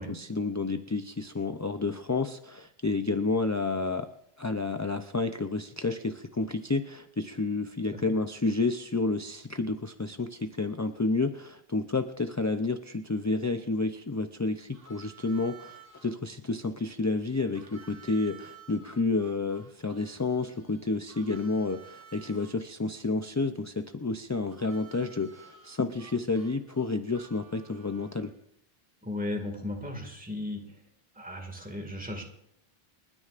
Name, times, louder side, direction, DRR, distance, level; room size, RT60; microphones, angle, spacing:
voice 1, 0.0-4.1 4.4-28.3, left 3 dB, 25° left, 8 dB, 0.3 m, -30 dB
Harmonica, 14.7-16.2 17.5-22.5 24.5-28.4, right 7 dB, 65° right, 1.8 m, -53 dB
voice 2, 29.0-30.6 31.2-32.2, left 2 dB, 10° right, 2 dB, 2.0 m, -35 dB
29.5 x 9.8 x 2.5 m, 0.74 s
omnidirectional pair, 1.0 m